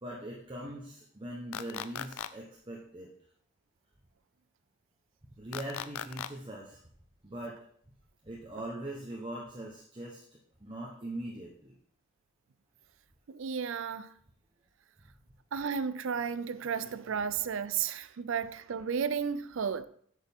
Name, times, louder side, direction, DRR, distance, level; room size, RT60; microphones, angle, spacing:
voice 1, 0.0-3.1 5.3-6.8 7.2-7.6 8.2-10.2 10.6-11.7, right 1 dB, 25° right, 1.0 m, -41 dB
sound 1, 1.5-2.3 5.5-6.3, left 9 dB, 80° left, 0.4 m, -37 dB
voice 2, 13.3-14.1 15.5-19.9, right 6 dB, 70° right, 0.4 m, -33 dB
8.7 x 6.5 x 3.6 m
head